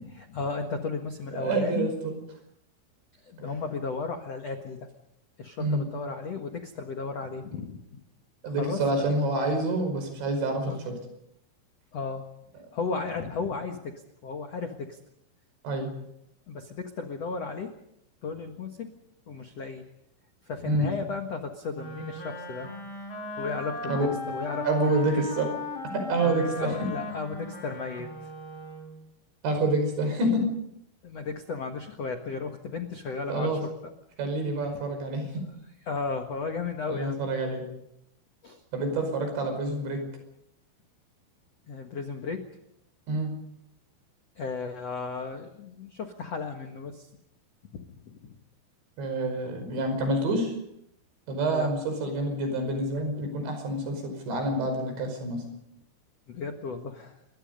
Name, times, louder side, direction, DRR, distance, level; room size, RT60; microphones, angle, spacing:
voice 1, 0.3-1.9 3.2-4.9 5.4-8.0 8.4-8.8 10.7-10.8 11.9-12.3 12.7-15.0 16.5-17.7 18.2-18.9 19.3-19.9 20.4-22.7 23.4-25.2 26.2-28.3 31.0-33.9 35.9-37.2 38.4-38.6 41.7-42.5 44.3-47.1 47.7-48.4 51.4-51.7 56.3-57.2, left 4 dB, 85° left, 5 dB, 1.4 m, -34 dB
voice 2, 1.3-2.2 5.6-5.9 8.4-11.0 15.6-15.9 20.7-20.9 23.8-24.1 24.6-25.5 25.9-26.9 29.4-30.4 33.3-33.6 34.2-35.3 36.9-37.6 38.7-40.0 43.1-43.4 49.0-50.6 51.3-55.4, right 2 dB, 65° right, 6 dB, 7.4 m, -27 dB
Wind instrument woodwind instrument, 21.7-29.1, left 2 dB, 30° left, 2.6 m, -37 dB
27.5 x 23.0 x 5.4 m, 0.79 s
omnidirectional pair, 5.7 m